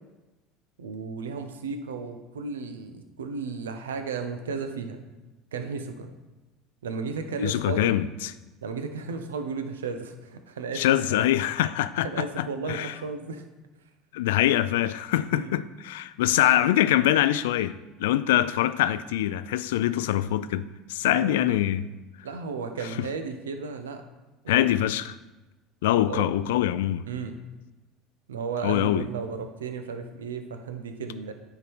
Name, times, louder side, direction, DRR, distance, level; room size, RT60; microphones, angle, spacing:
voice 1, 0.8-5.0 5.5-6.1 6.8-8.0 8.6-10.8 11.1-11.2 12.0-13.4 15.3-15.5 21.1-21.6 22.2-24.0 24.4-24.7 25.9-26.3 27.1-27.3 28.3-31.3, right 5 dB, 85° right, 0.7 m, -34 dB
voice 2, 7.4-8.3 10.7-12.9 14.1-21.9 22.8-23.1 24.5-25.2 25.8-27.1 28.6-29.0, left 13 dB, 75° left, 0.3 m, -24 dB
9.6 x 3.9 x 4.5 m
hypercardioid pair, 75°, 0 cm